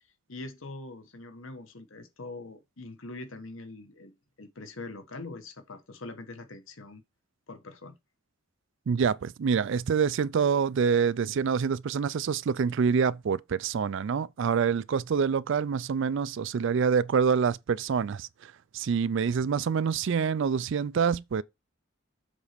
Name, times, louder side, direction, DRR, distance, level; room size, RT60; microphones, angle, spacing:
voice 1, 0.3-4.1 4.4-7.0 7.5-8.0, left 2 dB, 65° left, 1.3 m, -43 dB
voice 2, 8.9-21.4, right 6 dB, 60° right, 0.4 m, -26 dB
7.2 x 4.2 x 5.1 m
head